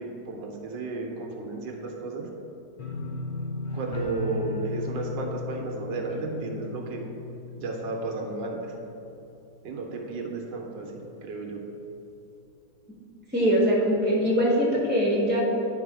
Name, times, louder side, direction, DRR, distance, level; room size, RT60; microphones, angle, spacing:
voice 1, 0.0-2.3 3.7-7.0 7.5-8.7 9.6-11.6, right 3 dB, 80° right, 1 dB, 1.5 m, -33 dB
sound 1, 2.8-9.7 10.0-10.5 10.9-11.0, left 3 dB, 60° left, 0.5 m, -36 dB
voice 2, 13.3-15.4, equal, 5° right, -4 dB, 1.2 m, -22 dB
9.6 x 3.8 x 4.9 m, 2.9 s
omnidirectional pair, 1.9 m